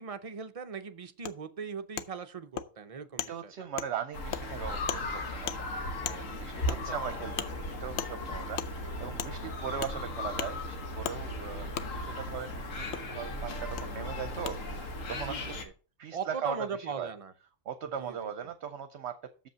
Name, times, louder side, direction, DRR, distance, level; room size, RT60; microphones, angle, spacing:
voice 1, 0.0-3.5 6.7-7.0 15.2-15.5 16.1-17.3 18.0-18.5, right 6 dB, 40° right, 9 dB, 0.5 m, -40 dB
Wood, 1.2-1.3 2.0-2.1 2.6-2.7 3.2-3.3 3.8-3.9 4.3-4.4 4.9-5.0 5.5-5.6 6.0-6.2 6.7-6.8 7.4-7.5 8.0-8.1 8.6-8.7 9.2-9.3 9.8-9.9 10.4-10.5 11.0-11.2 11.7-11.9 12.9-13.0 13.8-13.9 14.4-14.5, left 9 dB, 65° left, 0.8 m, -35 dB
voice 2, 3.3-5.7 6.0-15.5 16.0-17.1 17.7-19.2, right 7 dB, 65° right, 9 dB, 0.9 m, -39 dB
sound 1, 4.1-15.6, left 1 dB, 90° left, 1.6 m, -37 dB
7.0 x 5.3 x 6.7 m, 0.38 s
omnidirectional pair, 1.3 m